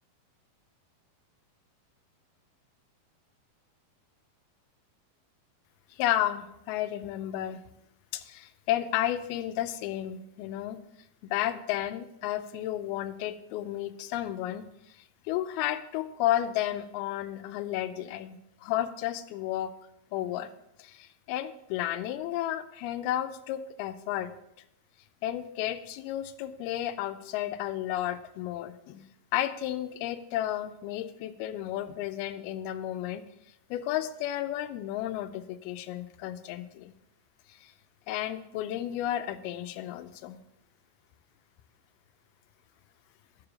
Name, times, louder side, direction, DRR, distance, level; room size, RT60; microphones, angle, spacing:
voice 1, 5.9-7.6 8.1-10.8 11.2-14.7 15.3-18.4 18.6-19.7 20.1-20.5 20.8-24.3 25.2-33.2 33.7-36.9 37.6-37.7 38.1-40.4, left 12 dB, 90° left, 11 dB, 2.5 m, -32 dB
7.2 x 4.9 x 6.2 m, 0.81 s
omnidirectional pair, 4.3 m